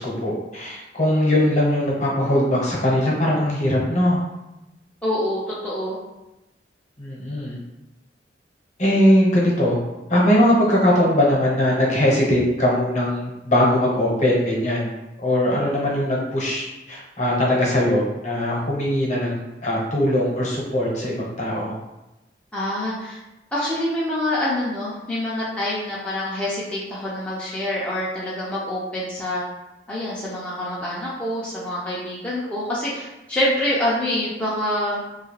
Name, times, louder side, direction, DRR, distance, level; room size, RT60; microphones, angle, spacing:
voice 1, 0.0-4.2 7.0-7.6 8.8-9.8 10.1-14.9 15.2-21.7, left 1 dB, 45° left, -4 dB, 0.9 m, -20 dB
voice 2, 5.0-6.0 22.5-23.2 23.5-29.4 29.9-35.0, left 1 dB, 5° left, -8 dB, 0.5 m, -26 dB
2.7 x 2.3 x 3.1 m, 0.97 s
head